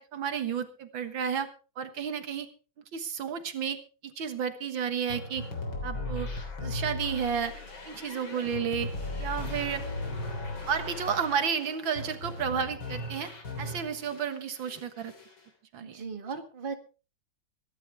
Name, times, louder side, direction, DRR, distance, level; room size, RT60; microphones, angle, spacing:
voice 1, 0.0-1.5 1.8-2.5 2.9-3.8 4.0-5.4 5.8-6.3 6.6-8.9 9.2-9.9 10.7-13.3 13.6-15.1 15.7-16.0, right 7 dB, 80° right, 9 dB, 2.2 m, -32 dB
sound 1, 5.1-14.2 14.6-15.4, left 2 dB, 90° left, 4.3 m, -37 dB
voice 2, 15.8-16.7, right 5 dB, 30° right, 6 dB, 1.8 m, -37 dB
24.0 x 11.5 x 3.5 m, 0.35 s
omnidirectional pair, 2.1 m